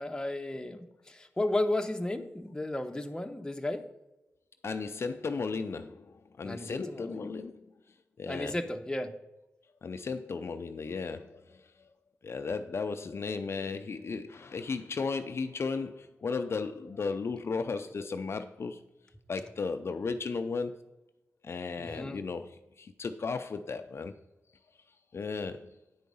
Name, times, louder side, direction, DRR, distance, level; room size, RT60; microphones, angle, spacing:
voice 1, 0.0-3.8 6.4-7.3 8.3-9.1 21.8-22.2, left 1 dB, 15° left, 0.8 m, -34 dB
voice 2, 4.6-7.6 8.2-8.5 9.8-11.6 12.2-18.8 19.3-20.9 21.4-24.1 25.1-25.7, left 4 dB, 60° left, 0.4 m, -35 dB
9.5 x 4.7 x 5.4 m
wide cardioid pair, 80°, 5 cm